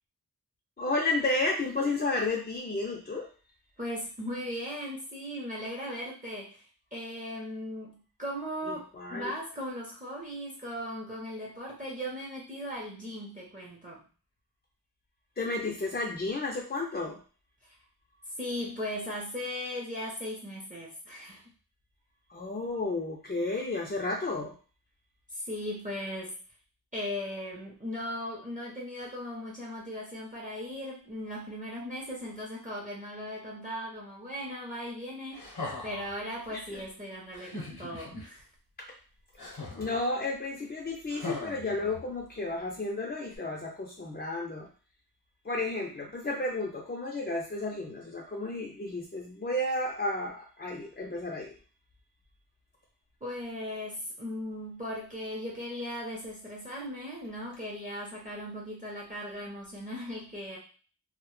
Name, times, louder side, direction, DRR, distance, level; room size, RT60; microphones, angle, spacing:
voice 1, 0.8-3.3 8.7-9.3 15.4-17.2 22.3-24.5 36.7-36.8 39.8-44.7 45.4-51.5, left 2 dB, 30° left, -2 dB, 0.4 m, -32 dB
voice 2, 3.8-14.1 17.6-17.7 18.4-21.4 25.3-26.4 26.9-38.5 53.2-60.6, equal, 20° right, -3 dB, 0.6 m, -38 dB
sound 1, 35.3-36.1 37.3-38.3 39.4-40.0 41.1-42.3 43.3-43.4, left 2 dB, 75° left, 0.7 m, -40 dB
2.1 x 2.0 x 3.0 m, 0.39 s
wide cardioid pair, 65°, 39 cm